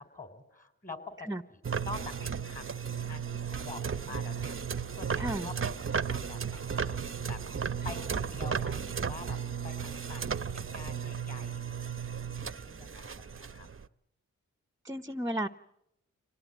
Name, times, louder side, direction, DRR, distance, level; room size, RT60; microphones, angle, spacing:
voice 1, 0.0-7.0 7.2-7.4 7.8-9.4 9.6-11.9 12.6-13.7, left 3 dB, 25° left, 8 dB, 4.6 m, -46 dB
sound 1, 1.6-13.9, right 6 dB, 40° right, 0.8 m, -35 dB
voice 2, 5.2-5.5 14.8-15.5, right 1 dB, 10° right, 11 dB, 0.9 m, -33 dB
24.5 x 18.5 x 9.3 m, 0.84 s
cardioid pair, 40°, 32 cm